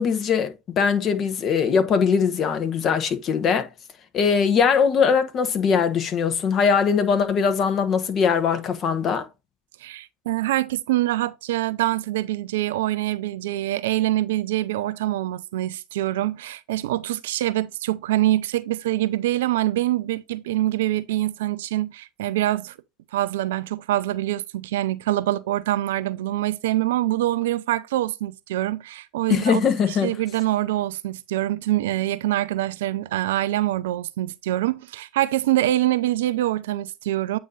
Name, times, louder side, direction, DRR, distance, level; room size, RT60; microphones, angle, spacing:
voice 1, 0.0-3.7 4.1-9.3 29.3-30.2, left 6 dB, 40° left, 1.1 m, -21 dB
voice 2, 9.8-22.8 23.1-29.6 29.9-37.4, right 15 dB, 65° right, 0.4 m, -25 dB
8.5 x 2.9 x 4.0 m
figure-of-eight pair, 80°, 0 cm